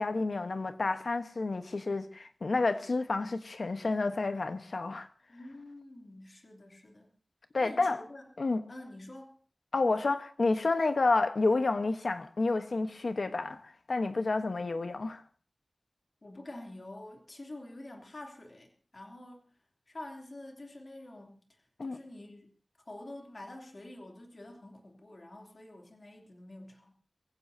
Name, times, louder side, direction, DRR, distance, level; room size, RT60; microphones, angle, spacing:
voice 1, 0.0-5.1 7.5-8.0 8.4-8.6 9.7-15.2 21.8-22.0, left 3 dB, 90° left, 1.2 m, -30 dB
voice 2, 5.3-7.1 7.6-8.2 8.7-9.4 16.2-19.4 19.9-22.5 22.8-26.9, left 1 dB, 60° left, 3.0 m, -47 dB
23.5 x 15.5 x 2.8 m
wide cardioid pair, 65°, 0 cm